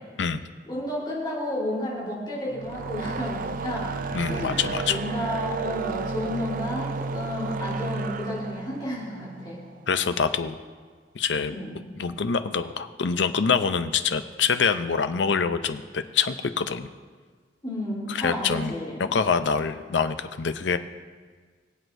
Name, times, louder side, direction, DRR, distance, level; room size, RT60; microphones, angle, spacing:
voice 1, 0.7-3.9 4.3-4.6 4.9-9.6 11.5-11.8 17.6-19.0, left 1 dB, 25° left, -6 dB, 3.4 m, -32 dB
sound 1, 2.5-9.9, right 4 dB, 50° right, 0.4 m, -32 dB
voice 2, 4.1-5.0 9.9-10.6 11.1-11.5 12.0-16.9 18.1-20.8, left 6 dB, 85° left, 10 dB, 0.6 m, -25 dB
23.0 x 8.1 x 2.6 m, 1.5 s
head